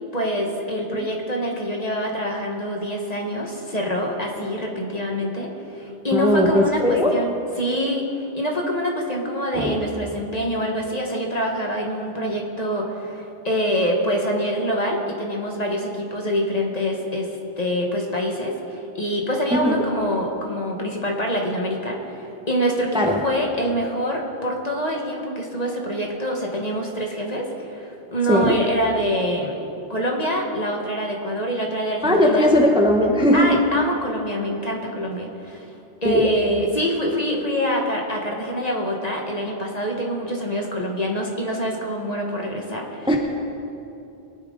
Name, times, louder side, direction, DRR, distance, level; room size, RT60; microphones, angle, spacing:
voice 1, 0.1-17.3 17.6-29.6 29.9-32.5 33.3-35.7 36.0-43.1, equal, 35° left, 0 dB, 1.7 m, -25 dB
voice 2, 6.1-7.1 9.5-9.8 19.5-19.9 22.9-23.2 28.3-28.6 32.0-33.6 36.0-36.3 43.1-43.2, equal, 5° right, 1 dB, 1.0 m, -18 dB
22.5 x 10.0 x 4.0 m, 2.8 s
omnidirectional pair, 1.1 m